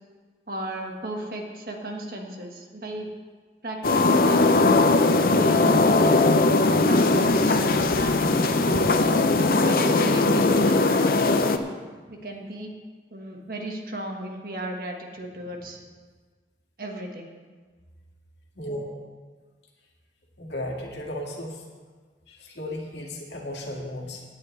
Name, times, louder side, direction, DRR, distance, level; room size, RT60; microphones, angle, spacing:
voice 1, 0.5-3.1 3.6-4.8 5.2-9.2 9.6-11.6 12.1-12.7 13.1-15.8 16.8-17.3, right 1 dB, 55° right, 2 dB, 1.5 m, -34 dB
sound 1, 3.8-11.6, left 3 dB, 55° left, 0.6 m, -20 dB
voice 2, 18.6-18.9 20.4-21.6 22.3-24.2, left 1 dB, 80° left, -1 dB, 2.1 m, -35 dB
17.5 x 9.3 x 3.3 m, 1.5 s
head